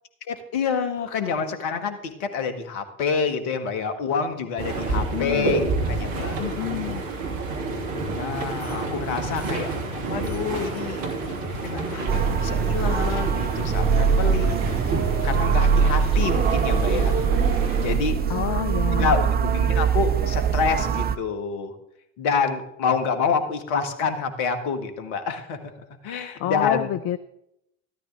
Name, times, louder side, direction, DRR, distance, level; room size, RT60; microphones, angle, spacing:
voice 1, 0.3-6.4 8.1-9.7 10.1-11.0 11.6-14.7 15.2-17.2 17.8-18.2 18.9-21.7 22.2-25.6 26.0-26.9, left 5 dB, 55° left, 8 dB, 1.9 m, -27 dB
sound 1, 4.6-18.0, right 3 dB, 50° right, 2.8 m, -30 dB
voice 2, 4.9-5.6 6.4-7.0 18.3-19.1 26.4-27.2, left 14 dB, 35° left, 14 dB, 0.5 m, -29 dB
sound 2, 8.5-17.3, left 7 dB, 85° left, 1.2 m, -41 dB
sound 3, 12.1-21.2, right 6 dB, 20° right, 0.6 m, -22 dB
13.5 x 13.0 x 3.5 m, 0.78 s
figure-of-eight pair, 65°, 43 cm